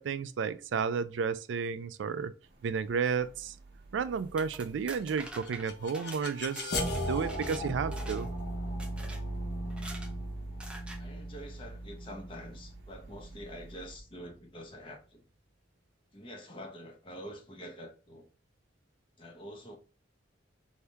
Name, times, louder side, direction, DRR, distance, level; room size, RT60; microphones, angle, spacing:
voice 1, 0.0-2.3 2.6-3.6 3.9-8.3, right 6 dB, 85° right, 0.3 m, -32 dB
sound 1, 2.4-14.0, right 3 dB, 60° right, 0.7 m, -56 dB
sound 2, 4.2-7.6 7.9-8.4 8.8-9.2 9.7-10.1 10.6-11.0, right 1 dB, 5° right, 0.5 m, -46 dB
sound 3, 5.2-14.2, equal, 60° left, 0.9 m, -37 dB
voice 2, 11.0-15.2 16.1-18.3 19.2-19.8, equal, 30° left, 0.8 m, -46 dB
3.4 x 2.7 x 4.4 m
head